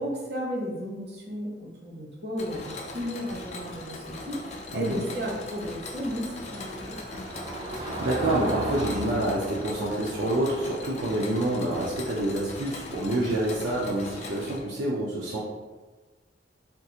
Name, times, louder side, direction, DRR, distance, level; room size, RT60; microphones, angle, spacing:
voice 1, 0.0-7.3, equal, 60° right, -4 dB, 0.9 m, -34 dB
Mechanisms, 2.4-14.6, left 2 dB, 40° left, 0.4 m, -40 dB
Car passing by / Engine, 3.3-13.9, right 1 dB, 30° right, 0.4 m, -39 dB
voice 2, 7.7-15.4, right 1 dB, 85° right, -4 dB, 0.5 m, -27 dB
3.5 x 2.4 x 2.8 m, 1.2 s
head